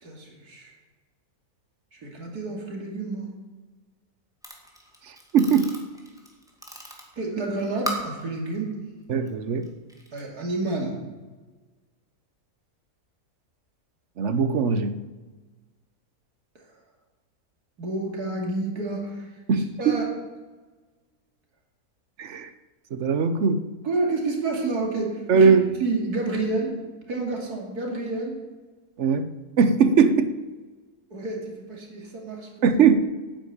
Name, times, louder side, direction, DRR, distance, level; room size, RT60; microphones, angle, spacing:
voice 1, 0.0-0.7 1.9-3.3 7.2-8.7 10.1-10.9 17.8-19.3 19.8-20.1 23.8-25.6 25.8-26.7 27.1-28.4 31.1-32.8, right 2 dB, 80° right, 0 dB, 3.0 m, -29 dB
sound 1, 4.4-8.2 9.1-9.3 9.6-10.2, equal, ahead, 2.1 m, -37 dB
voice 2, 5.3-5.7 9.1-9.7 14.2-14.9 19.5-20.0 22.2-22.5 22.9-23.6 25.3-25.7 29.0-29.3 29.6-30.3 32.6-33.0, right 5 dB, 55° right, 12 dB, 1.0 m, -20 dB
10.5 x 9.2 x 8.5 m, 1.3 s
omnidirectional pair, 1.6 m